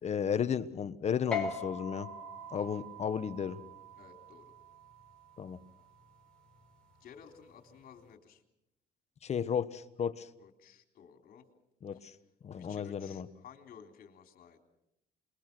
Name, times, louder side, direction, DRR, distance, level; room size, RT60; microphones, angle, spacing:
voice 1, 0.0-2.1 2.5-3.6 5.4-5.6 9.2-10.3 11.8-12.2 12.4-13.3, left 7 dB, 40° left, 12 dB, 1.2 m, -34 dB
sound 1, 1.3-8.1, left 4 dB, 5° left, 4.5 m, -43 dB
voice 2, 4.0-4.5 7.0-8.4 10.4-11.4 12.6-14.6, left 7 dB, 60° left, 4 dB, 3.7 m, -55 dB
28.0 x 22.0 x 6.2 m, 0.84 s
cardioid pair, 110°, 17 cm